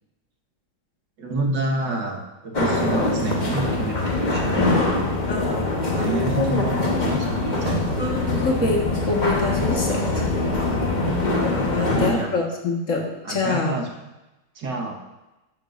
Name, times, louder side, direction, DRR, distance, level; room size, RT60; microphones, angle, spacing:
voice 1, 1.2-4.9 5.9-7.9 11.8-12.4 13.2-13.9 14.6-15.0, right 2 dB, 85° right, 0 dB, 2.1 m, -28 dB
sound 1, 2.5-12.1, left 2 dB, 30° left, 1.2 m, -23 dB
voice 2, 5.3-6.3 8.0-10.3 11.7-13.7, left 3 dB, 50° left, 0 dB, 1.8 m, -26 dB
13.0 x 9.4 x 2.5 m, 1.0 s
omnidirectional pair, 1.8 m